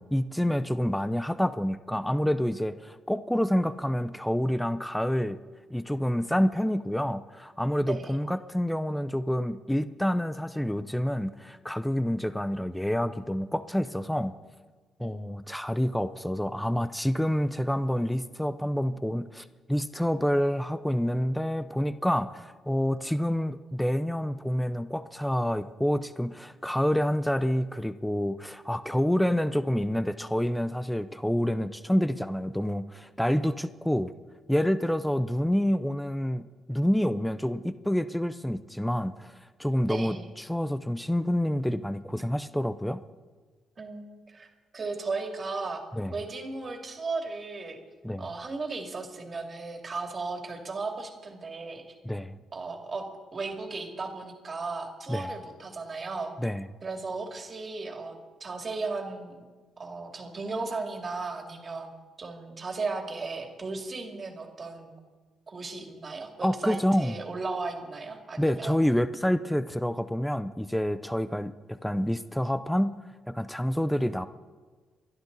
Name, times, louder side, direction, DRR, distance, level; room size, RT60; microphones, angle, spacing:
voice 1, 0.0-5.4 5.7-14.3 15.0-34.1 34.5-39.3 39.6-43.0 45.9-46.1 48.0-48.3 52.0-52.4 55.1-55.3 56.4-56.7 66.4-67.1 68.4-72.9 73.3-74.3, equal, 5° left, 13 dB, 0.5 m, -28 dB
voice 2, 7.8-8.2 15.0-15.2 39.9-40.3 43.8-44.5 44.7-45.8 46.1-47.8 48.2-52.0 52.5-56.3 56.8-59.4 59.8-61.9 62.2-64.9 65.5-68.8, right 3 dB, 35° right, 3 dB, 2.6 m, -36 dB
28.5 x 11.5 x 4.0 m, 1.4 s
cardioid pair, 90°, 0 cm